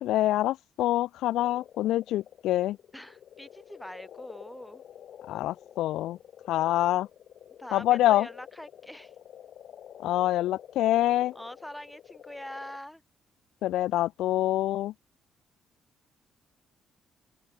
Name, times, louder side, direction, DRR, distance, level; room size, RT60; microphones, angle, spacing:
voice 1, 0.0-2.8 5.3-6.2 6.5-7.1 7.7-8.3 10.0-11.3 13.6-14.9, left 14 dB, 85° left, 0.7 m, -26 dB
sound 1, 1.4-12.8, left 9 dB, 65° left, 5.5 m, -49 dB
voice 2, 2.9-4.8 7.6-9.1 11.3-13.0, equal, 5° left, 4.6 m, -43 dB
open air
cardioid pair, 90°, 0 cm